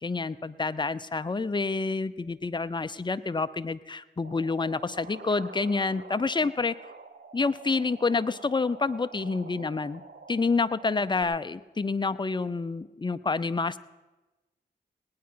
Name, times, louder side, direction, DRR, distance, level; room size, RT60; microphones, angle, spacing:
voice 1, 0.0-6.7 7.3-10.0 10.3-13.8, left 4 dB, 25° left, 13 dB, 0.6 m, -28 dB
sound 1, 4.2-11.2, right 4 dB, 65° right, 1.1 m, -48 dB
18.5 x 9.6 x 5.7 m, 1.1 s
cardioid pair, 60°, 19 cm